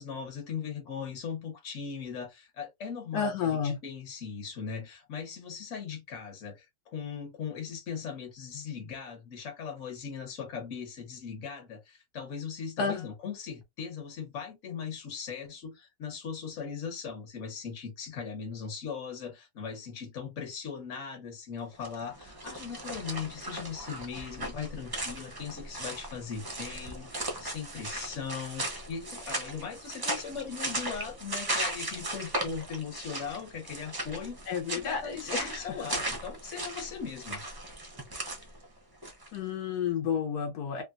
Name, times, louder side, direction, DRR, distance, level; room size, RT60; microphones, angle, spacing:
voice 1, 0.0-34.6 34.8-37.4, left 6 dB, 55° left, 1.3 m, -39 dB
voice 2, 3.1-3.8 12.8-13.1 34.5-35.8 39.3-40.8, left 6 dB, 85° left, 1.3 m, -31 dB
sound 1, 21.7-39.4, right 1 dB, 30° right, 0.4 m, -37 dB
3.1 x 2.2 x 2.5 m
omnidirectional pair, 1.6 m